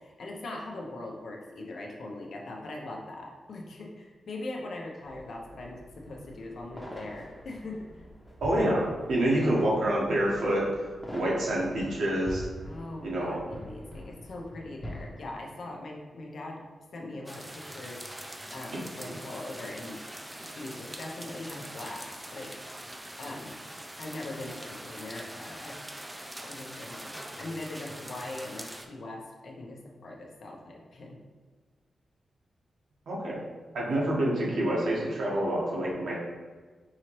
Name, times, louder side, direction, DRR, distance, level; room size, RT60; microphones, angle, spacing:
voice 1, 0.0-8.0 9.3-9.5 12.6-16.6 16.9-18.0 18.5-20.0 20.4-22.5 23.2-23.6 24.0-25.8 26.4-31.2 33.9-34.1, left 2 dB, 70° left, 0 dB, 0.8 m, -41 dB
sound 1, 5.0-15.1, equal, 15° left, 0.9 m, -45 dB
voice 2, 8.4-10.6 11.1-12.5 13.0-13.4 19.0-19.2 33.1-33.4 33.7-36.1, right 1 dB, 85° right, -5 dB, 1.3 m, -27 dB
sound 2, 17.3-28.9, right 1 dB, 10° right, 0.4 m, -43 dB
4.8 x 2.9 x 3.1 m, 1.4 s
cardioid pair, 80°, 0 cm